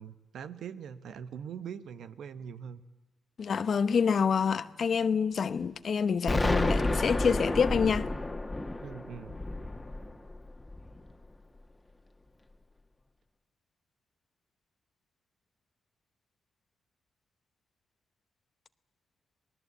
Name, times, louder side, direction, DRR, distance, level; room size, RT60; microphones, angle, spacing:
voice 1, 0.0-2.8 8.8-9.4, right 7 dB, 75° right, 1.0 m, -42 dB
voice 2, 3.4-8.1, left 6 dB, 60° left, 0.9 m, -27 dB
Explosion, 6.3-11.1, left 2 dB, 20° left, 1.8 m, -30 dB
27.0 x 19.0 x 8.1 m
cardioid pair, 60°, 0 cm